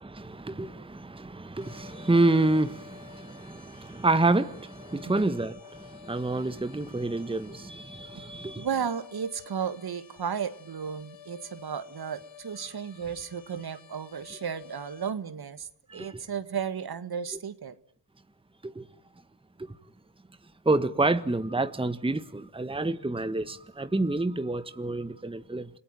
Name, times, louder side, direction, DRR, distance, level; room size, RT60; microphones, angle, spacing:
voice 1, 0.0-8.7 15.9-16.2 18.6-18.9 19.6-19.7 20.6-25.7, right 2 dB, 10° right, 1.4 m, -28 dB
sound 1, 1.6-15.1, left 8 dB, 65° left, 2.2 m, -51 dB
voice 2, 5.0-5.4 8.6-17.7, right 7 dB, 50° right, 1.8 m, -34 dB
28.5 x 18.5 x 9.2 m
supercardioid pair, 45°, 47 cm